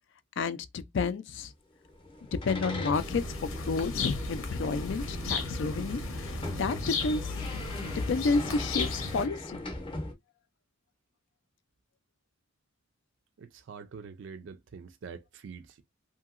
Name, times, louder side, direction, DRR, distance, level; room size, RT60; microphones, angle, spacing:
voice 1, 0.4-1.5 2.3-7.4 7.9-9.6, left 4 dB, 60° left, 0.4 m, -31 dB
sound 1, 1.8-10.1, left 2 dB, 25° left, 0.6 m, -40 dB
sound 2, 2.9-9.3, left 3 dB, 85° left, 0.8 m, -35 dB
voice 2, 13.4-15.8, right 5 dB, 60° right, 0.4 m, -45 dB
2.8 x 2.8 x 2.4 m
head